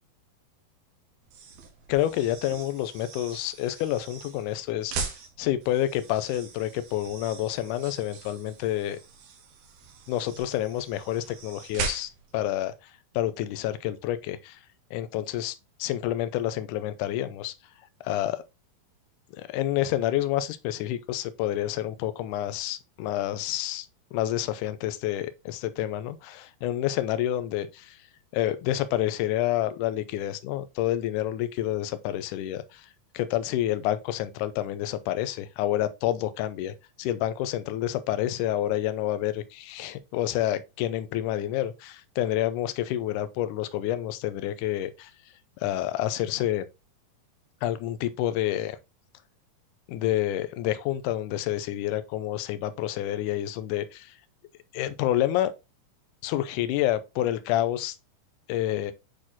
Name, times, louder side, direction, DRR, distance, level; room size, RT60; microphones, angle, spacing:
sound 1, 1.2-12.4, right 5 dB, 85° right, 3.1 m, -40 dB
voice 1, 1.9-5.1 5.4-9.0 10.1-12.7 13.1-14.6 14.9-15.5 15.8-17.5 18.0-18.4 19.4-23.9 24.1-28.0 28.3-32.9 33.1-45.1 45.6-46.7 47.6-48.8 49.9-54.1 54.7-55.5 56.2-58.0 58.5-58.9, left 13 dB, 85° left, 1.8 m, -28 dB
8.0 x 4.3 x 2.8 m
omnidirectional pair, 4.2 m